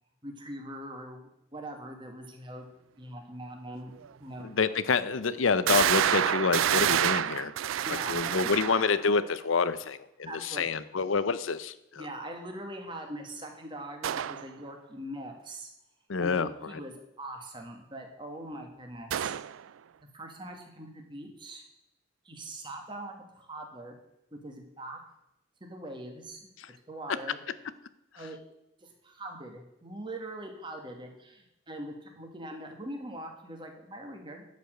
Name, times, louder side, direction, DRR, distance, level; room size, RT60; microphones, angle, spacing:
voice 1, 0.2-2.7 3.0-3.9 4.2-4.5 7.8-8.3 10.3-10.6 12.0-15.7 16.2-19.3 20.1-21.6 22.2-23.9 24.4-25.0 25.6-26.5 26.9-27.4 28.2-28.4 28.8-34.4, right 1 dB, 25° right, 2 dB, 1.7 m, -42 dB
sound 1, 4.0-4.1 4.7-4.8 5.7-9.1 14.0-14.4 19.1-19.6, right 10 dB, 90° right, 0.4 m, -28 dB
voice 2, 4.4-7.5 8.1-12.0 16.1-16.7 26.6-26.7, left 5 dB, 85° left, 15 dB, 0.7 m, -28 dB
11.5 x 5.2 x 7.8 m, 0.83 s
head